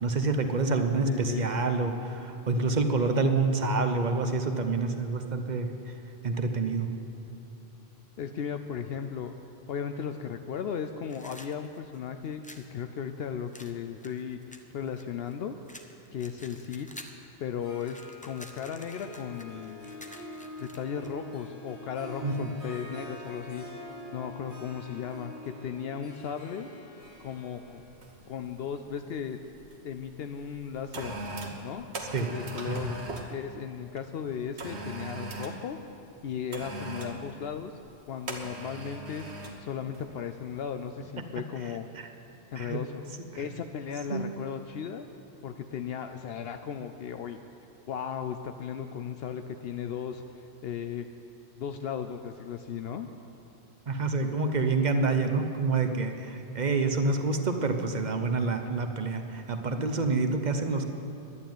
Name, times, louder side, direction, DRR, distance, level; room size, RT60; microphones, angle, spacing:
voice 1, 0.0-5.7 6.2-6.9 22.2-22.5 32.1-32.3 32.7-32.9 41.4-41.5 41.9-42.1 42.6-42.8 43.3-43.4 44.1-44.3 53.9-60.8, right 3 dB, 45° right, 6 dB, 0.9 m, -27 dB
voice 2, 1.0-1.5 8.2-9.3 9.7-12.4 12.7-15.5 16.1-16.9 17.4-19.8 20.6-23.6 24.1-26.7 27.2-27.8 28.3-29.4 29.8-31.1 31.6-31.9 32.3-33.0 33.3-35.8 36.2-37.7 38.1-39.3 39.6-41.9 42.5-43.0 43.4-45.1 45.4-47.4 47.9-51.1 51.6-53.1, left 7 dB, 70° left, 7 dB, 0.8 m, -36 dB
sound 1, 11.1-12.7 13.5-15.3 15.7-17.3 17.6-21.1, left 1 dB, 10° left, 0.6 m, -49 dB
Harp, 17.6-30.4, left 1 dB, 50° left, 2.1 m, -46 dB
sound 2, 27.2-27.4 28.0-28.3 28.6-29.7 30.4-33.3 34.6-35.6 36.5-37.2 38.3-39.6 39.9-40.2, right 2 dB, 85° right, 1.5 m, -39 dB
11.5 x 9.8 x 9.2 m, 2.9 s
omnidirectional pair, 1.1 m